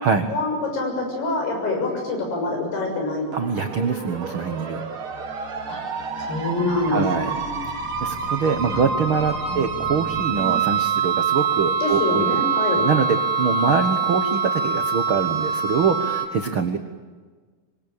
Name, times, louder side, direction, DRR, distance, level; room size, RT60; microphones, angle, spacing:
voice 1, 0.3-3.3 5.7-5.8 6.2-7.6 8.7-8.9 9.5-9.6 10.4-10.7 11.8-12.8, left 2 dB, 85° left, 2 dB, 8.8 m, -26 dB
sound 1, 3.3-16.3, right 5 dB, 45° right, 2.1 m, -25 dB
voice 2, 3.3-4.8 6.9-7.3 7.7-12.4 12.8-16.8, right 6 dB, 85° right, 6 dB, 1.1 m, -24 dB
sound 2, 4.7-11.0, left 1 dB, 25° left, 2.8 m, -40 dB
27.0 x 22.5 x 8.8 m, 1.4 s
omnidirectional pair, 4.5 m